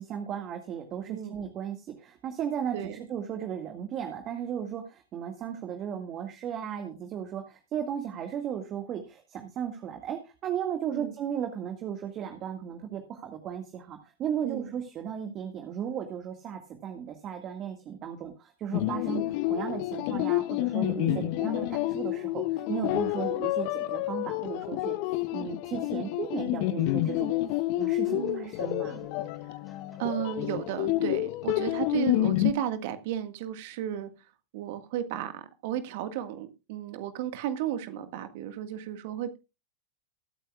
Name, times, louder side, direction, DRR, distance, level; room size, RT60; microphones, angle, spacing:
voice 1, 0.0-29.0, right 8 dB, 35° right, 1.9 m, -36 dB
voice 2, 2.7-3.1 10.9-11.1 14.4-14.7 21.0-21.3 28.1-28.5 30.0-34.1 34.5-39.4, right 10 dB, 55° right, 1.7 m, -34 dB
sound 1, 18.7-32.5, left 16 dB, 50° left, 0.7 m, -29 dB
sound 2, 26.8-32.1, left 3 dB, 15° left, 4.7 m, -57 dB
22.0 x 8.9 x 2.4 m
figure-of-eight pair, 95°, 0 cm